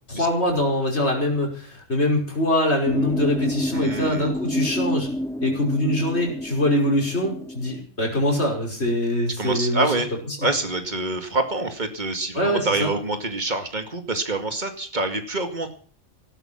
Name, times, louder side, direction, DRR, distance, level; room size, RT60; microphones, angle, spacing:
voice 1, 0.1-5.1 5.4-9.9 10.3-10.4 12.3-12.9, left 1 dB, 70° left, 0 dB, 5.8 m, -23 dB
sound 1, 2.9-7.8, left 1 dB, 5° left, 0.8 m, -28 dB
voice 2, 3.7-4.3 9.4-10.1 10.4-15.7, right 2 dB, 40° right, 6 dB, 2.5 m, -26 dB
17.5 x 13.0 x 5.9 m, 0.43 s
omnidirectional pair, 1.2 m